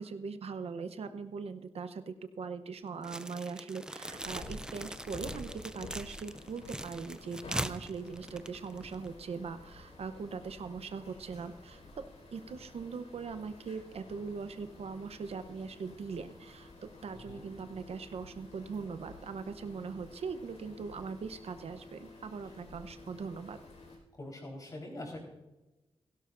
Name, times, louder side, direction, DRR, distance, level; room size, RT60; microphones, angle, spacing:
voice 1, 0.0-11.8 12.3-23.6, right 5 dB, 70° right, 10 dB, 0.8 m, -41 dB
sound 1, 3.0-9.1, right 1 dB, 5° right, 0.4 m, -41 dB
sound 2, 4.1-24.0, left 2 dB, 90° left, 4.9 m, -51 dB
voice 2, 17.1-17.4 24.2-25.2, left 1 dB, 35° left, 0 dB, 4.2 m, -43 dB
17.5 x 16.5 x 2.6 m, 1.0 s
wide cardioid pair, 180°, 11 cm